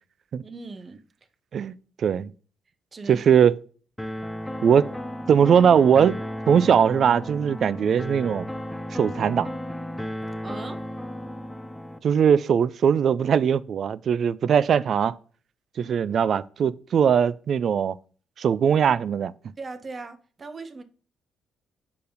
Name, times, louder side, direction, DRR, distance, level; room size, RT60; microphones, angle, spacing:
voice 1, 0.4-1.0 2.9-3.2 10.4-10.8 19.6-20.8, right 3 dB, 35° right, 0.7 m, -38 dB
voice 2, 1.5-2.3 3.1-3.5 4.6-4.9 5.3-6.2 6.5-8.5 8.9-9.5 12.0-15.2 15.8-18.0 18.4-19.3, right 7 dB, 55° right, 0.3 m, -20 dB
sound 1, 4.0-12.0, equal, 5° left, 0.4 m, -34 dB
5.1 x 4.6 x 5.1 m
cardioid pair, 90°, 0 cm